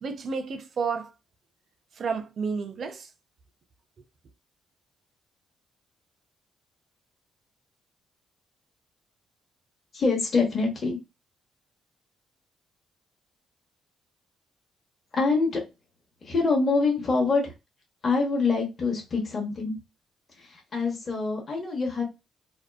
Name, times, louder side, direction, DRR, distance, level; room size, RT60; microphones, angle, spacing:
voice 1, 0.0-1.1 2.0-3.1, right 5 dB, 50° right, 0.5 m, -31 dB
voice 2, 9.9-11.0 15.1-15.6 16.2-17.5 18.0-19.7 20.3-22.0, left 4 dB, 40° left, 0.9 m, -25 dB
2.7 x 2.2 x 2.3 m
cardioid pair, 90°, 0 cm